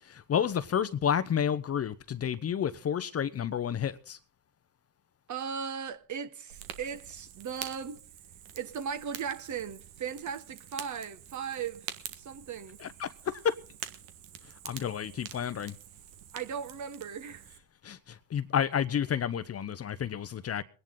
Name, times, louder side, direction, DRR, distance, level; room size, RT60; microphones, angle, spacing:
voice 1, 0.1-4.2 12.8-13.5 14.6-15.7 17.8-20.6, left 8 dB, 35° left, 0.9 m, -30 dB
voice 2, 5.3-8.0 8.5-11.9 12.1-12.8 16.3-17.5, right 7 dB, 40° right, 1.4 m, -37 dB
Fire, 6.5-17.6, right 10 dB, 75° right, 1.7 m, -46 dB
23.0 x 10.5 x 3.8 m
hypercardioid pair, 65°, 44 cm